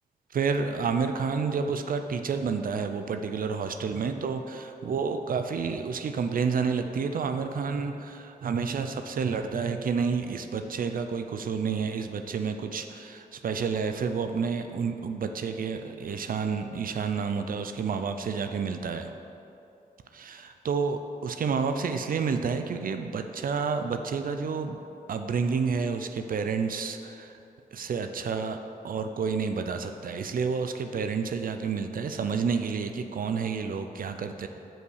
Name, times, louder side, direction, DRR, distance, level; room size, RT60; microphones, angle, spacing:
voice 1, 0.3-19.1 20.1-24.8 25.1-27.4 27.7-28.6 28.8-34.5, right 5 dB, 65° right, 7 dB, 0.5 m, -30 dB
7.5 x 5.4 x 6.4 m, 2.7 s
cardioid pair, 90°, 15 cm